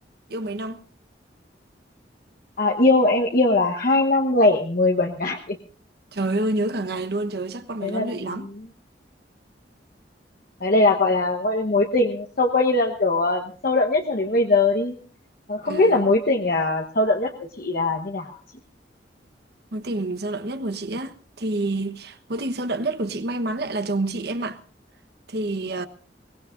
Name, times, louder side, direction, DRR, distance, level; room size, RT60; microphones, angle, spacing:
voice 1, 0.3-0.8 6.1-8.5 15.6-16.1 19.7-24.6 25.3-25.9, right 2 dB, 65° right, 1.2 m, -28 dB
voice 2, 2.6-5.6 7.8-8.5 10.6-14.9 15.5-17.3 17.6-18.3, left 2 dB, 55° left, 1.2 m, -21 dB
22.5 x 19.5 x 2.6 m
head